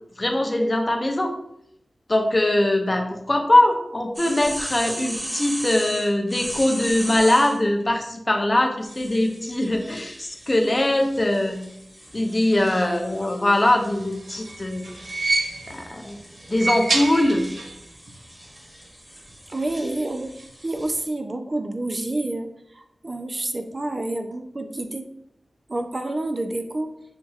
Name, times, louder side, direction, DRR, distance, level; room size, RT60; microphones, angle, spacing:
voice 1, 0.2-1.3 2.1-11.6 12.1-14.8 15.7-16.2 16.5-17.5, left 1 dB, 30° left, 3 dB, 0.5 m, -21 dB
sound 1, 4.1-7.6 8.8-21.0, equal, 20° right, 1.2 m, -38 dB
sound 2, 14.0-15.9 16.4-17.8 18.1-18.2 19.3-19.4, right 2 dB, 90° right, 0.5 m, -27 dB
voice 2, 19.5-22.5 22.7-25.1 25.7-26.9, right 2 dB, 35° right, 6 dB, 0.3 m, -29 dB
5.7 x 2.6 x 2.4 m, 0.76 s
wide cardioid pair, 105°, 0 cm